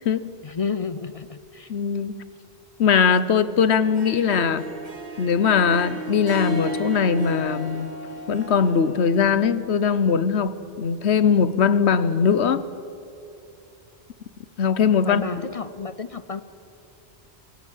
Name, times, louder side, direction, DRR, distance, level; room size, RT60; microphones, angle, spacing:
voice 1, 0.4-1.7 15.0-16.4, left 5 dB, 40° left, 13 dB, 0.6 m, -31 dB
voice 2, 1.7-2.1 2.8-4.6 5.2-7.9 8.3-12.6 14.6-15.2, left 6 dB, 85° left, 15 dB, 1.2 m, -20 dB
Harp, 3.8-9.1, right 2 dB, 45° right, 2.2 m, -34 dB
26.5 x 16.5 x 8.3 m, 2.7 s
omnidirectional pair, 1.1 m